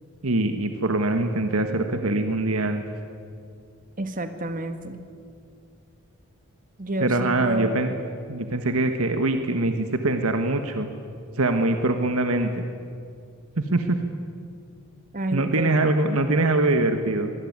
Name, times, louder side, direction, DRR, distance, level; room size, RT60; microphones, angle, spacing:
voice 1, 0.2-2.8 7.0-7.9 8.3-10.9 11.4-12.6 13.6-14.0 15.3-17.3, right 2 dB, 75° right, 6 dB, 1.5 m, -23 dB
voice 2, 4.0-5.0 6.8-7.8 15.1-15.7, right 1 dB, 40° right, 8 dB, 1.8 m, -29 dB
25.0 x 19.5 x 9.6 m, 2.3 s
head